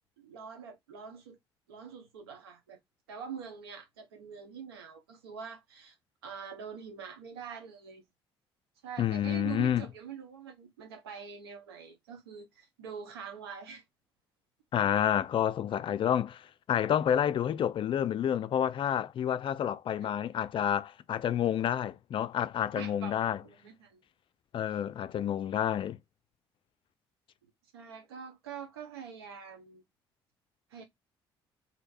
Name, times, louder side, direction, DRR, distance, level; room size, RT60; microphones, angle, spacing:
voice 1, 0.2-1.4 1.7-2.8 3.1-6.0 6.2-8.0 8.8-13.8 20.0-20.1 22.7-24.0 24.7-24.8 27.7-29.8 30.7-30.8, right 7 dB, 80° right, 0.7 m, -45 dB
voice 2, 9.0-9.8 14.7-23.4 24.5-26.0, left 10 dB, 40° left, 0.3 m, -29 dB
3.1 x 2.7 x 2.4 m
figure-of-eight pair, 45°, 13 cm